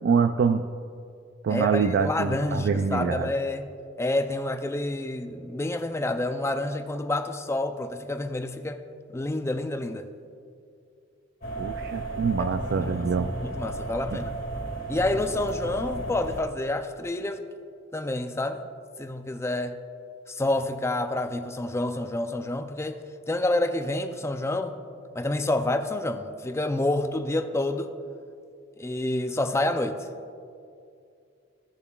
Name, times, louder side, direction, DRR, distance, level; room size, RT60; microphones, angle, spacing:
voice 1, 0.0-0.7 1.4-3.3 11.6-13.3 14.1-14.2, right 5 dB, 60° right, 8 dB, 0.3 m, -25 dB
voice 2, 1.5-3.7 4.0-8.8 9.1-10.1 12.4-13.0 13.4-14.3 14.9-17.5 17.9-18.6 19.0-19.8 20.3-24.8 25.1-27.9 28.8-30.1, left 2 dB, 15° left, 7 dB, 0.4 m, -28 dB
sound 1, 11.4-16.4, right 1 dB, 50° left, 1.8 m, -34 dB
16.0 x 6.8 x 2.3 m, 2.4 s
head